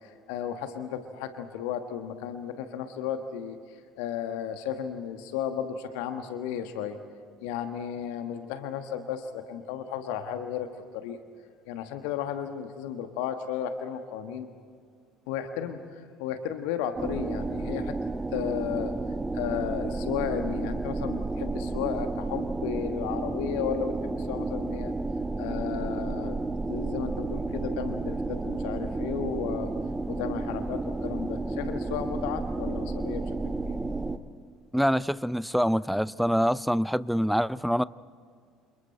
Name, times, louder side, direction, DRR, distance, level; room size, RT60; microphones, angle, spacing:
voice 1, 0.0-7.0 7.4-10.7 10.9-11.2 11.6-14.5 15.3-17.9 18.3-18.9 19.3-24.9 25.4-26.4 26.7-29.7 30.1-33.8, left 8 dB, 65° left, 8 dB, 1.4 m, -34 dB
sound 1, 17.0-34.2, right 3 dB, 15° right, 1.1 m, -32 dB
voice 2, 34.7-37.8, equal, ahead, 20 dB, 0.5 m, -25 dB
30.0 x 28.0 x 4.4 m, 2.2 s
figure-of-eight pair, 60°, 0 cm